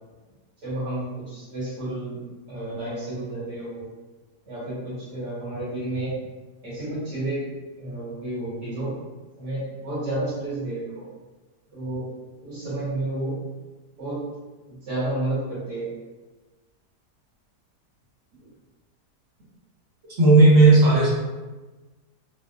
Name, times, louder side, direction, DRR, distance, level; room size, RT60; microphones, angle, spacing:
voice 1, 0.6-2.2 2.5-3.9 4.5-6.1 6.6-7.5 7.8-9.0 9.4-11.1 11.7-12.1 12.4-13.4 14.0-14.2 14.7-15.9, right 1 dB, 80° right, -10 dB, 2.2 m, -31 dB
voice 2, 20.2-21.1, right 2 dB, 50° right, -6 dB, 0.9 m, -13 dB
3.9 x 2.1 x 2.3 m, 1.2 s
omnidirectional pair, 1.8 m